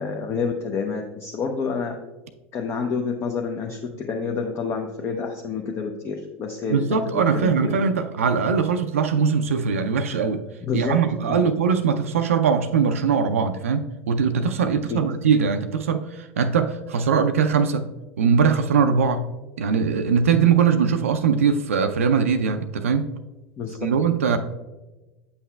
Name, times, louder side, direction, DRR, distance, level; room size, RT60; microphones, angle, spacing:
voice 1, 0.0-2.0 2.5-6.8 7.1-7.8 10.6-11.0 11.3-11.4 14.9-15.0 23.6-23.8, left 5 dB, 35° left, 2 dB, 0.6 m, -28 dB
voice 2, 6.7-10.4 10.7-17.9 18.2-19.2 19.6-23.1 23.8-24.4, right 6 dB, 80° right, 7 dB, 0.4 m, -21 dB
8.2 x 5.6 x 2.2 m, 1.1 s
hypercardioid pair, 80°, 7 cm